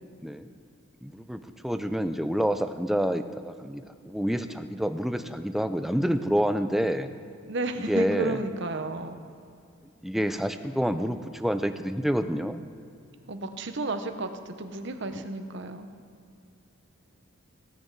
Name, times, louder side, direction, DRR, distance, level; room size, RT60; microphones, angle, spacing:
voice 1, 1.0-7.1 7.9-8.4 10.0-12.6, equal, ahead, 9 dB, 0.4 m, -28 dB
voice 2, 7.4-9.2 13.3-15.9, right 2 dB, 55° right, 8 dB, 0.8 m, -32 dB
17.5 x 7.9 x 4.7 m, 2.5 s
head